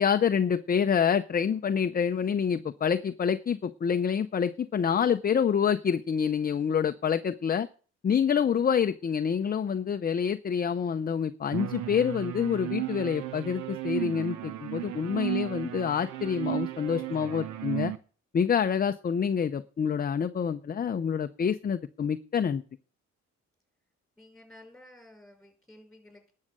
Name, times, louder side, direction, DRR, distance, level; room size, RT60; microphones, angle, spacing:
voice 1, 0.0-7.7 8.0-17.9 18.3-22.6, left 7 dB, 30° left, 10 dB, 0.6 m, -27 dB
sound 1, 11.5-18.0, right 15 dB, 85° right, 0.9 m, -34 dB
voice 2, 24.2-26.3, left 1 dB, ahead, 5 dB, 5.4 m, -53 dB
11.0 x 6.5 x 7.8 m, 0.39 s
cardioid pair, 90°, 30 cm